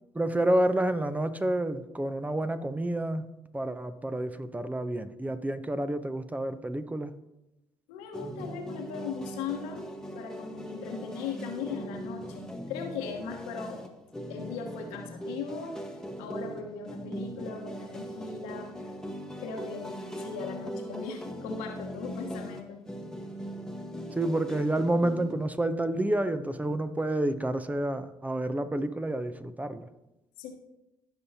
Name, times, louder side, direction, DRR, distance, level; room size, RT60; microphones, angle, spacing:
voice 1, 0.1-3.2 3.5-7.1 24.1-29.9, right 1 dB, 15° right, 11 dB, 0.7 m, -29 dB
voice 2, 7.9-9.8 10.1-13.8 14.3-15.8 16.2-18.7 19.4-22.9 30.4-30.5, left 5 dB, 80° left, 3 dB, 1.2 m, -38 dB
sound 1, 8.1-25.6, equal, 5° left, 1.2 m, -40 dB
15.0 x 5.6 x 2.8 m, 0.93 s
hypercardioid pair, 50°, 11 cm